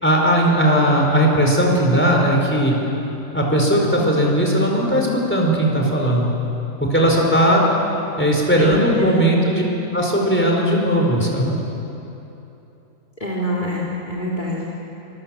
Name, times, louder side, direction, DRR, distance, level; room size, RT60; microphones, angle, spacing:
voice 1, 0.0-2.8 3.3-6.3 6.9-7.6 8.2-9.6 9.9-11.5, equal, 5° left, -1 dB, 4.4 m, -17 dB
voice 2, 8.6-9.2 13.2-14.7, equal, 30° left, -3 dB, 2.9 m, -25 dB
25.5 x 23.0 x 7.5 m, 2.9 s
omnidirectional pair, 1.6 m